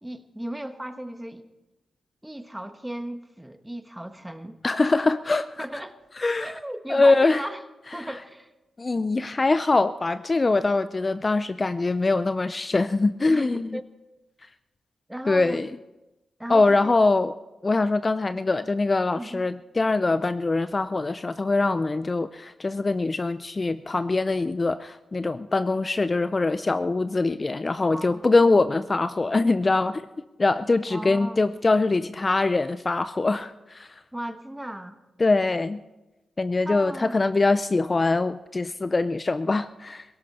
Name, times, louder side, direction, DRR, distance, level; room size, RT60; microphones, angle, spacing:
voice 1, 0.0-1.4 2.2-4.6 5.6-6.0 6.3-7.6 7.9-8.5 13.3-13.8 15.1-15.6 16.4-16.9 19.2-19.4 27.9-28.2 30.9-31.4 34.1-35.0 36.6-37.2, right 1 dB, 10° right, 8 dB, 1.3 m, -36 dB
voice 2, 4.6-5.7 6.2-6.5 6.9-7.4 8.8-13.8 15.3-15.7 16.5-17.3 17.6-30.1 30.4-33.9 35.2-35.8 36.4-40.0, left 3 dB, 35° left, 12 dB, 0.5 m, -23 dB
17.5 x 16.5 x 4.3 m, 1.0 s
cardioid pair, 60°, 0 cm